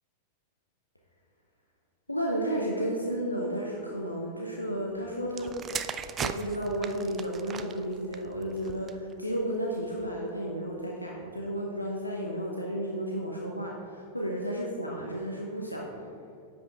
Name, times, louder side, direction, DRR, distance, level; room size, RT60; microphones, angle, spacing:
voice 1, 2.1-5.6 6.2-15.9, equal, 85° left, -1 dB, 0.7 m, -32 dB
sound 1, 5.3-9.1 9.9-10.2, right 7 dB, 25° right, 0.3 m, -38 dB
10.5 x 7.7 x 2.4 m, 2.5 s
figure-of-eight pair, 90°, 0 cm